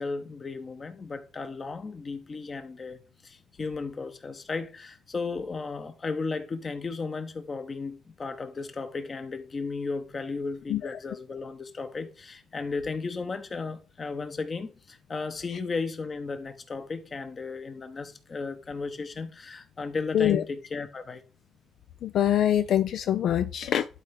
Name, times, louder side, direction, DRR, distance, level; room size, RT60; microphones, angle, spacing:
voice 1, 0.0-21.2, left 4 dB, 35° left, 1.1 m, -35 dB
voice 2, 22.0-23.9, left 10 dB, 70° left, 0.4 m, -24 dB
11.0 x 4.3 x 3.8 m
cardioid pair, 90°, 0 cm